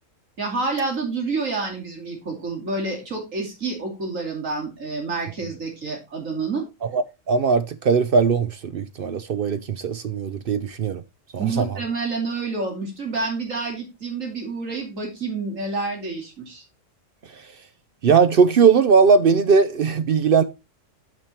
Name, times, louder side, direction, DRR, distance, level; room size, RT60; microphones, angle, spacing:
voice 1, 0.4-6.6 11.4-16.6, right 3 dB, 90° right, 3.2 m, -28 dB
voice 2, 6.8-11.0 11.3-11.8 17.4-17.5 18.0-20.4, right 5 dB, 55° right, 0.7 m, -19 dB
9.0 x 5.3 x 4.2 m
omnidirectional pair, 1.3 m